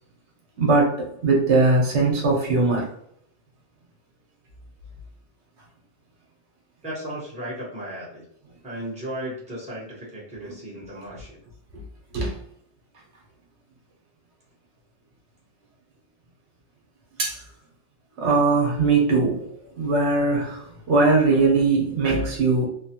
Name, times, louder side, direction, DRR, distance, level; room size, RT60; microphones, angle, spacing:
voice 1, 0.6-2.9 10.5-10.6 12.1-12.3 17.2-17.4 18.2-19.5 19.8-22.7, right 3 dB, 70° right, 1.1 m, -20 dB
voice 2, 6.8-8.2 8.6-11.4, right 1 dB, 5° right, 0.9 m, -35 dB
3.1 x 2.1 x 2.8 m
omnidirectional pair, 1.2 m